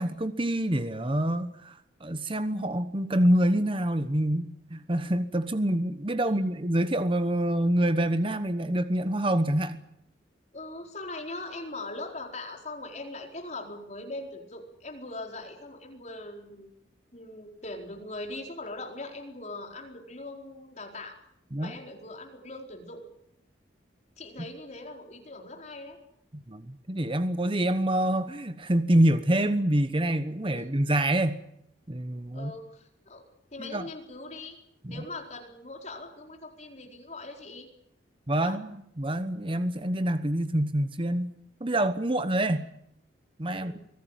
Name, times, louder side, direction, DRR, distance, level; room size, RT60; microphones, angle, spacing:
voice 1, 0.0-9.8 21.5-21.7 26.3-31.4 31.9-32.5 33.6-33.8 34.8-35.0 38.3-41.3 41.6-42.7 43.4-43.7, right 1 dB, 25° right, 11 dB, 1.0 m, -26 dB
voice 2, 10.5-16.7 17.1-21.2 21.6-23.1 24.2-26.0 30.5-30.7 32.3-33.2 33.5-34.6 34.9-37.7 38.4-38.6 43.5-43.8, left 2 dB, 35° left, 2 dB, 4.5 m, -41 dB
24.5 x 17.5 x 9.1 m, 0.74 s
head